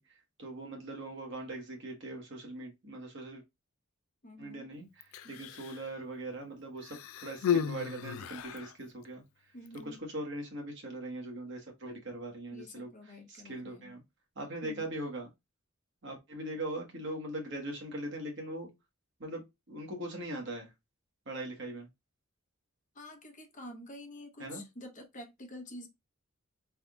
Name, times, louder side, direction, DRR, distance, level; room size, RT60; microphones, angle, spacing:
voice 1, 0.0-3.4 4.4-9.2 9.8-14.0 14.3-15.3 16.0-18.7 19.2-20.7 21.3-21.9 24.4-24.6, right 1 dB, 55° right, 1.3 m, -41 dB
voice 2, 4.2-4.7 5.2-5.5 9.5-10.0 12.5-13.9 14.6-14.9 22.9-25.9, left 1 dB, 35° left, 0.9 m, -48 dB
Human voice, 5.0-5.9 6.8-8.7 9.7-9.8, left 8 dB, 70° left, 0.3 m, -34 dB
3.5 x 2.5 x 3.4 m
head